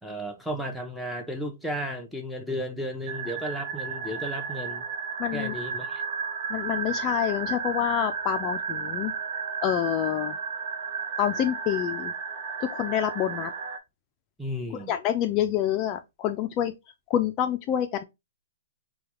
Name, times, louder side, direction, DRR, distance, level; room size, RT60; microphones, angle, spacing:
voice 1, 0.0-4.8 5.3-6.0 14.4-14.9, equal, ahead, 0.8 m, -34 dB
sound 1, 3.1-13.8, right 6 dB, 50° right, 0.8 m, -33 dB
voice 2, 5.2-5.5 6.5-10.4 11.2-12.1 12.6-13.5 14.7-16.7 17.1-18.0, left 11 dB, 30° left, 0.4 m, -27 dB
4.7 x 2.3 x 2.9 m
hypercardioid pair, 130°, 0 cm